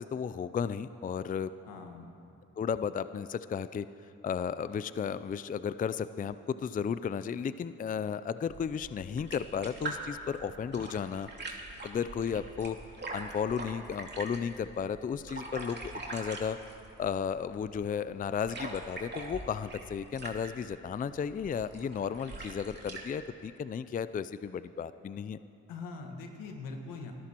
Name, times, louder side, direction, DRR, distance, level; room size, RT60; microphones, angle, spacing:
voice 1, 0.0-1.5 2.6-3.9 4.2-11.3 11.8-12.8 13.1-16.6 17.0-25.4, left 7 dB, 25° left, 14 dB, 0.4 m, -34 dB
voice 2, 1.7-2.2 25.7-27.1, left 4 dB, 85° left, 3 dB, 1.6 m, -42 dB
sound 1, 8.5-23.1, right 2 dB, 30° right, 2.5 m, -43 dB
26.0 x 13.5 x 3.0 m, 2.7 s
supercardioid pair, 55°, 32 cm